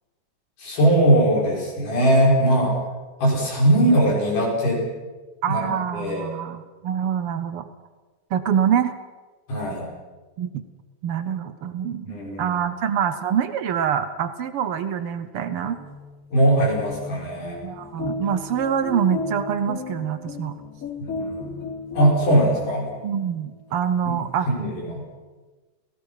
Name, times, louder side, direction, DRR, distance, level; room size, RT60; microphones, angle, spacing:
voice 1, 0.6-2.7 3.2-4.8 5.5-5.7 5.9-6.2 9.5-9.8 12.1-12.6 16.3-17.6 21.0-21.5 21.9-22.9 24.1-24.2 24.5-25.0, right 1 dB, 70° left, -2 dB, 7.4 m, -20 dB
voice 2, 5.4-7.7 8.3-9.0 10.4-10.6 11.0-15.8 17.6-20.6 23.0-24.5, right 8 dB, 75° right, 11 dB, 1.3 m, -25 dB
sound 1, 15.6-23.2, left 2 dB, 25° left, 3.3 m, -35 dB
30.0 x 18.0 x 5.8 m, 1.3 s
omnidirectional pair, 3.7 m